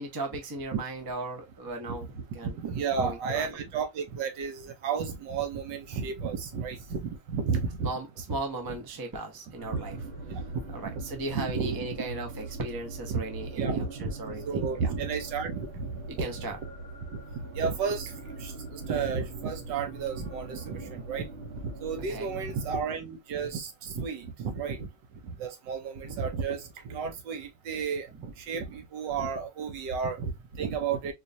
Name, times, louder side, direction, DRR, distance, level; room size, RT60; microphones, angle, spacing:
voice 1, 0.0-2.0 2.3-2.5 3.0-3.5 7.8-10.0 10.7-14.5 14.8-14.9 16.1-16.6 20.9-21.0 22.1-22.4, right 2 dB, 30° right, 0.4 m, -36 dB
voice 2, 1.9-7.9 8.3-8.4 9.7-11.0 11.3-12.0 13.1-13.2 13.5-16.0 16.4-16.5 17.3-21.3 21.6-24.9 25.2-31.1, right 5 dB, 80° right, 1.5 m, -33 dB
sound 1, 9.6-22.8, right 3 dB, 50° right, 0.8 m, -42 dB
4.4 x 2.5 x 2.6 m
omnidirectional pair, 2.0 m